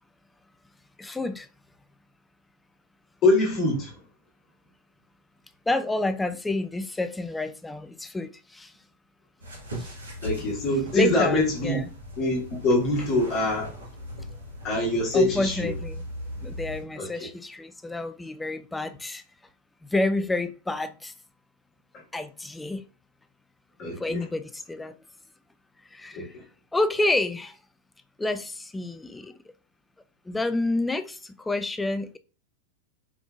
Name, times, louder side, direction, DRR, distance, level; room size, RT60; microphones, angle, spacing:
voice 1, 1.0-1.5 5.7-8.7 9.8-9.9 10.9-11.8 15.1-16.0 16.4-19.2 19.9-21.1 22.1-22.9 24.0-24.9 25.9-26.3 26.7-27.6 28.2-29.3 30.3-32.2, left 2 dB, 10° left, 0.3 m, -29 dB
voice 2, 3.2-3.9 10.2-11.8 12.2-13.7 14.6-15.7 17.0-17.3 23.8-24.2 26.1-26.4, left 2 dB, 35° left, 1.4 m, -24 dB
sound 1, 9.4-16.8, equal, 75° right, 1.3 m, -38 dB
4.6 x 3.4 x 2.3 m
figure-of-eight pair, 90°, 0 cm